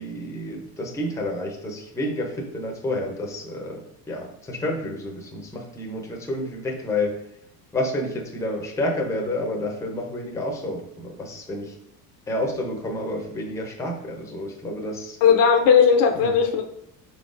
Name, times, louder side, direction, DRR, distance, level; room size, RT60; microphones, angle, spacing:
voice 1, 0.0-7.3 7.7-11.8 12.3-15.2 16.1-16.3, left 1 dB, 5° left, 1 dB, 0.6 m, -29 dB
voice 2, 15.2-16.6, left 6 dB, 50° left, 3 dB, 0.5 m, -17 dB
4.3 x 3.9 x 2.5 m, 0.74 s
cardioid pair, 130°, 43 cm